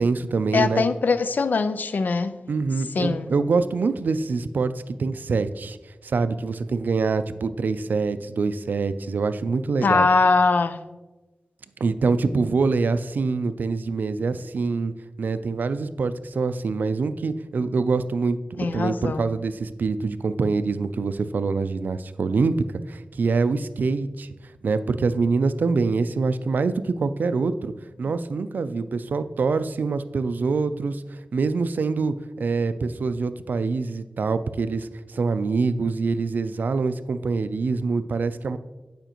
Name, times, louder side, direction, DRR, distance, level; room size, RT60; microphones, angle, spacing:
voice 1, 0.0-0.8 2.5-5.8 6.0-10.1 11.8-14.9 15.2-24.3 24.6-27.7 28.0-31.0 31.3-38.6, right 4 dB, 85° right, 0.3 m, -25 dB
voice 2, 0.5-2.4 2.9-3.3 9.8-10.8 18.6-19.3, left 4 dB, 80° left, 0.3 m, -22 dB
9.1 x 5.0 x 2.9 m
wide cardioid pair, 80°, 3 cm